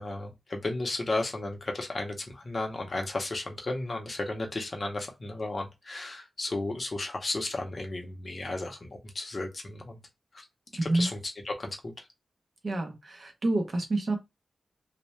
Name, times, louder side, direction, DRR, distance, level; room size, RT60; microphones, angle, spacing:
voice 1, 0.0-10.0 10.3-10.4 10.8-11.2 11.5-11.9, left 2 dB, 35° left, 0.6 m, -34 dB
voice 2, 10.8-11.1 12.6-14.2, right 2 dB, 45° right, 0.6 m, -28 dB
2.7 x 2.1 x 3.1 m
wide cardioid pair, 170°, 0 cm